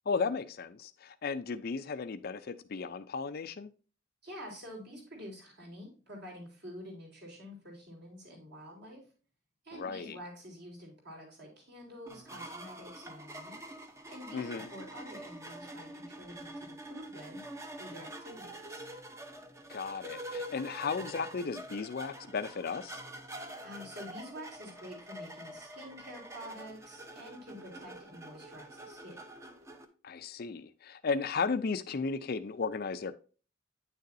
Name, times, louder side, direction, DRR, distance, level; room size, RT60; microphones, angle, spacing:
voice 1, 0.1-3.7 9.7-10.2 14.3-14.7 19.7-23.0 30.0-33.1, left 5 dB, 50° left, 0.4 m, -35 dB
voice 2, 4.2-9.0 9.6-13.6 14.1-17.4 17.8-18.8 23.6-29.2, equal, 55° right, 3.6 m, -48 dB
sound 1, 12.1-29.8, right 1 dB, 15° right, 0.7 m, -46 dB
9.0 x 6.6 x 2.6 m
head